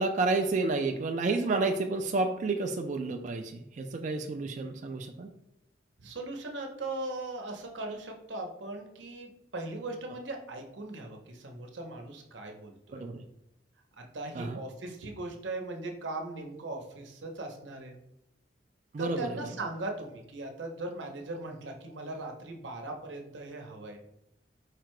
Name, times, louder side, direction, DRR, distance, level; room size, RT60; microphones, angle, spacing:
voice 1, 0.0-5.3 12.9-13.2 14.3-14.6 18.9-19.3, right 3 dB, 45° right, 4 dB, 0.3 m, -30 dB
voice 2, 6.0-13.0 13.9-18.0 19.0-24.0, right 2 dB, 90° right, 3 dB, 0.8 m, -39 dB
4.8 x 2.2 x 4.6 m, 0.80 s
head